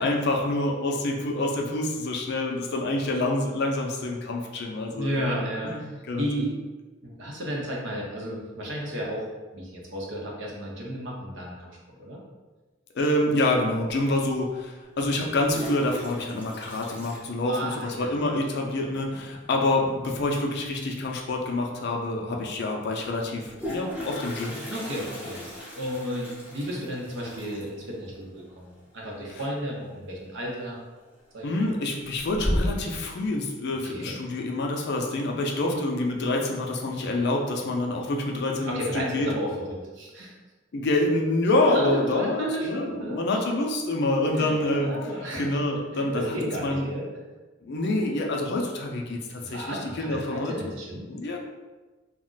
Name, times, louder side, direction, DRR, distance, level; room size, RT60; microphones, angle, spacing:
voice 1, 0.0-5.3 5.6-6.4 12.9-24.5 29.4-29.5 31.4-39.3 40.7-44.9 45.4-46.9 47.6-50.7 51.0-51.4, left 2 dB, 60° left, 1 dB, 0.4 m, -27 dB
voice 2, 4.9-5.7 6.1-6.6 7.0-9.2 9.5-11.7 12.0-12.2 17.4-18.1 24.7-30.8 31.3-31.8 33.7-34.2 38.7-39.5 40.0-40.3 41.7-43.2 44.4-45.5 45.9-47.0 49.4-51.1, equal, 65° right, -2 dB, 0.7 m, -33 dB
Toilet flush, 13.9-14.0 15.2-18.0 18.3-18.4 18.6-18.7 19.0-19.4 21.1-21.2 21.6-21.7 23.2-29.9 30.2-30.6 31.1-31.6 32.0-33.0, equal, 10° right, 0.6 m, -35 dB
2.4 x 2.1 x 3.8 m, 1.3 s
head